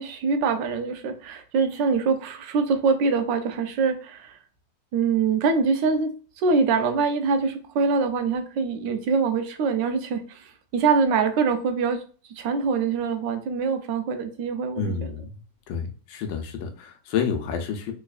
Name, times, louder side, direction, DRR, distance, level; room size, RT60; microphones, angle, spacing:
voice 1, 0.0-4.4 4.9-12.0 12.4-15.1, right 5 dB, 85° right, 7 dB, 1.3 m, -24 dB
voice 2, 14.7-15.3 15.7-17.9, left 6 dB, 90° left, 5 dB, 1.4 m, -29 dB
3.5 x 3.1 x 2.3 m, 0.39 s
omnidirectional pair, 1.9 m